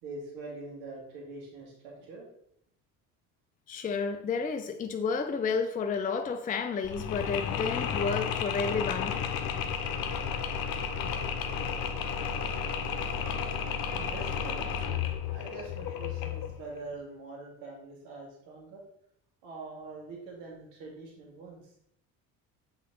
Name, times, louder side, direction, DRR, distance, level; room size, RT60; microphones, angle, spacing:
voice 1, 0.0-2.3 14.0-14.7 15.3-18.8 19.4-21.6, right 3 dB, 75° right, 2.2 m, -44 dB
voice 2, 3.7-9.2, left 5 dB, 20° left, 0.5 m, -31 dB
Mechanisms, 6.8-16.6, left 7 dB, 60° left, 0.9 m, -32 dB
6.4 x 3.9 x 3.8 m
hypercardioid pair, 65°, 42 cm